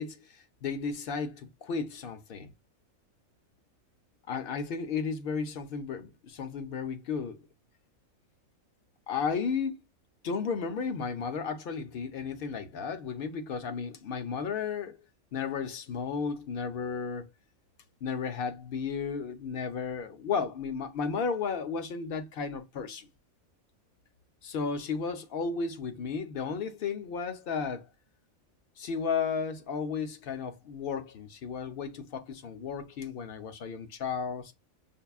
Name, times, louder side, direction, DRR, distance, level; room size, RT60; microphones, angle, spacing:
voice 1, 0.0-2.5 4.3-7.4 9.1-9.8 10.2-15.0 15.3-17.3 18.0-23.1 24.4-27.9 28.8-34.5, left 5 dB, 60° left, 0.6 m, -34 dB
5.3 x 2.2 x 2.3 m
omnidirectional pair, 1.4 m